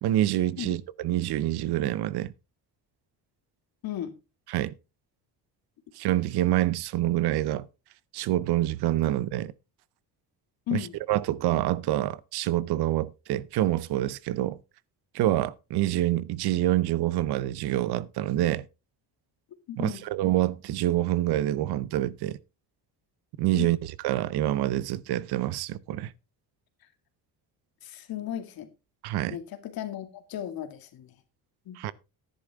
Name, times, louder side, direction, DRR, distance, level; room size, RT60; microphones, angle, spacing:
voice 1, 0.0-2.3 4.5-4.7 6.0-7.7 8.1-9.5 10.7-14.6 15.1-18.6 19.8-22.4 23.4-26.1 29.0-29.4 31.8-31.9, right 14 dB, 70° right, 0.7 m, -26 dB
voice 2, 3.8-4.1 10.7-11.0 19.7-20.0 23.5-23.7 27.8-28.7 29.3-31.1 31.7-31.9, left 11 dB, 60° left, 2.1 m, -35 dB
11.5 x 10.5 x 3.5 m
cardioid pair, 145°, 40 cm